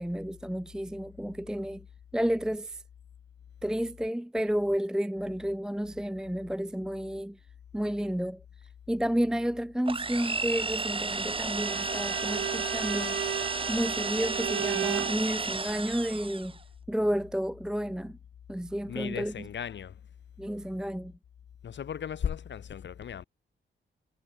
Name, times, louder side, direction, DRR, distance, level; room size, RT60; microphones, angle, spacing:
voice 1, 0.0-1.8 2.1-2.8 3.6-7.4 7.7-8.4 8.9-13.2 13.7-16.5 16.9-18.2 18.5-19.5 20.4-21.1, equal, 5° right, 0.7 m, -31 dB
sound 1, 9.9-16.6, right 3 dB, 25° right, 3.0 m, -33 dB
Bowed string instrument, 11.5-15.2, right 10 dB, 70° right, 0.6 m, -34 dB
voice 2, 18.9-20.0 21.6-23.2, left 8 dB, 60° left, 1.3 m, -36 dB
wide cardioid pair, 140°, 21 cm